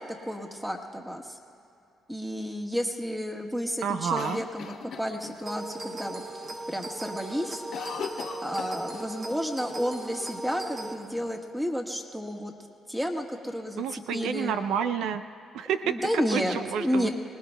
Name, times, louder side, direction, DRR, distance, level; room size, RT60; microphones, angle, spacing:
voice 1, 0.2-1.4 2.1-6.2 6.7-7.6 8.4-12.5 12.9-14.5 15.9-17.1, equal, 5° right, 2 dB, 1.4 m, -31 dB
voice 2, 3.8-4.4 13.8-15.2 15.5-17.1, right 7 dB, 85° right, 9 dB, 0.5 m, -29 dB
Cough, 4.2-5.6 6.0-6.1 6.4-6.8 7.1-9.4 9.7-9.8 10.5-11.3, left 6 dB, 70° left, 1.0 m, -39 dB
sound 1, 5.5-10.9, right 2 dB, 45° right, 1.4 m, -38 dB
24.5 x 19.0 x 2.3 m, 2.8 s
cardioid pair, 90°, 0 cm